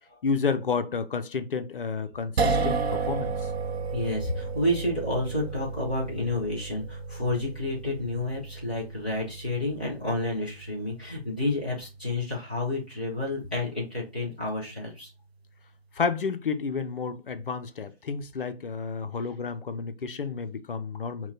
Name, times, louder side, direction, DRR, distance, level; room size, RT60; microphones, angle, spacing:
voice 1, 0.2-3.5 15.9-21.3, left 5 dB, 55° left, 0.5 m, -31 dB
sound 1, 2.4-14.7, right 4 dB, 75° right, 0.7 m, -34 dB
voice 2, 3.9-15.1, left 1 dB, 10° right, 0.4 m, -30 dB
5.9 x 2.2 x 2.7 m
figure-of-eight pair, 140°, 32 cm